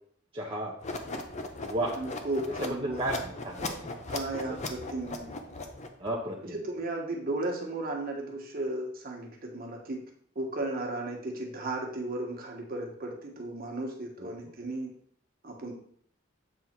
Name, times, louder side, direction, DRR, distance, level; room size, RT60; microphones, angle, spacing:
voice 1, 0.3-0.7 1.6-2.0 2.6-4.0 4.5-4.6 6.0-6.6 14.2-14.3, right 1 dB, 25° right, -3 dB, 0.7 m, -33 dB
sound 1, 0.8-6.1, left 3 dB, 35° left, 0.7 m, -38 dB
voice 2, 1.9-3.0 4.1-5.3 6.5-10.0 10.3-14.9 15.4-15.7, right 2 dB, 45° right, 1 dB, 1.2 m, -35 dB
7.6 x 3.5 x 4.4 m, 0.62 s
head